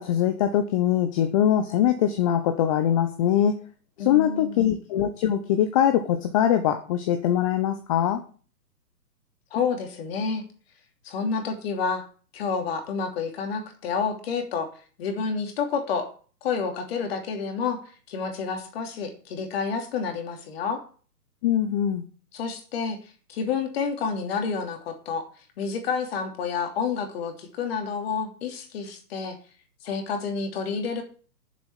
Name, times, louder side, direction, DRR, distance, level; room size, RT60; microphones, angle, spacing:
voice 1, 0.0-3.5 4.0-8.2 21.4-22.0, left 10 dB, 20° left, 8 dB, 0.9 m, -22 dB
voice 2, 4.0-4.7 9.5-10.4 11.0-12.1 12.3-14.7 15.0-16.1 16.4-20.8 22.3-23.0 23.3-25.3 25.6-29.4 29.8-31.0, left 5 dB, 40° left, 5 dB, 3.1 m, -29 dB
9.7 x 7.5 x 8.3 m, 0.41 s
figure-of-eight pair, 135°, 49 cm